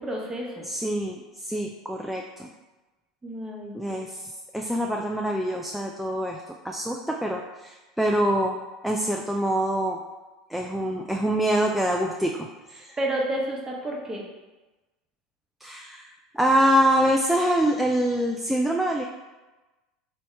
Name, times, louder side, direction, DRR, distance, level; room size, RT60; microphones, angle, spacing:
voice 1, 0.0-0.6 3.2-4.0 13.0-14.2, right 1 dB, 20° right, -2 dB, 1.0 m, -30 dB
voice 2, 0.7-2.5 3.7-8.6 8.8-10.0 10.5-13.0 15.6-19.0, right 1 dB, 5° right, 0 dB, 0.3 m, -25 dB
4.3 x 2.7 x 3.3 m, 1.1 s
hypercardioid pair, 80°, 3 cm